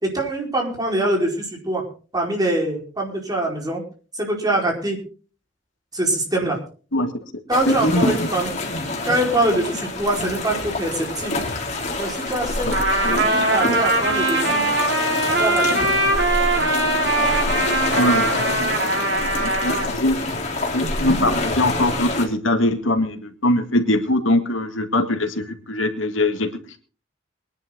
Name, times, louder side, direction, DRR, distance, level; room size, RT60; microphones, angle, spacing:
voice 1, 0.0-1.8 2.1-3.8 4.2-5.0 5.9-6.6 7.5-8.5 9.0-11.5 12.0-12.8 13.1-14.6 15.4-15.9, right 1 dB, 20° right, -1 dB, 4.8 m, -24 dB
sound 1, 7.5-22.3, left 2 dB, 35° left, 3.7 m, -26 dB
voice 2, 7.7-8.0 12.6-12.7 13.0-13.2 18.0-20.2 20.7-26.5, left 1 dB, 85° left, 6 dB, 2.2 m, -22 dB
Trumpet, 12.7-19.9, right 2 dB, 60° right, 4.6 m, -21 dB
23.0 x 11.0 x 3.9 m, 0.38 s
head